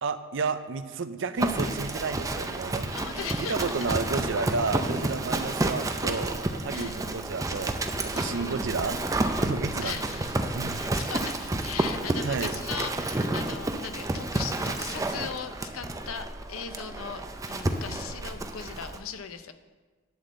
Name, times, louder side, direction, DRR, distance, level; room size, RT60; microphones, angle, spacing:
voice 1, 0.0-2.9 3.4-7.7 8.0-10.0 10.5-10.9 12.2-12.5, right 4 dB, 65° right, 11 dB, 0.6 m, -31 dB
Livestock farm animals working animals, 1.4-19.0, right 2 dB, 15° right, 0.5 m, -30 dB
voice 2, 2.9-3.7 6.7-7.0 8.1-8.7 9.8-10.4 10.7-19.5, left 7 dB, 85° left, 9 dB, 0.7 m, -38 dB
11.0 x 4.2 x 7.6 m, 1.4 s
head